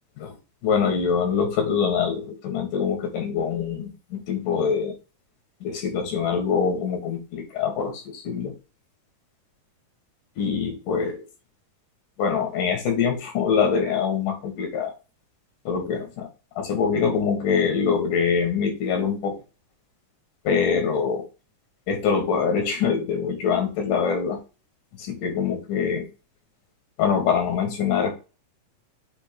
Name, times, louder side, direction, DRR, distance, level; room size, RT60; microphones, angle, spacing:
voice 1, 0.6-5.0 5.6-8.5 10.4-11.2 12.2-14.9 15.6-16.3 16.6-19.4 20.4-21.3 21.9-24.4 25.0-26.1 27.0-28.1, left 6 dB, 85° left, 4 dB, 3.3 m, -24 dB
7.5 x 2.9 x 5.1 m, 0.32 s
omnidirectional pair, 3.6 m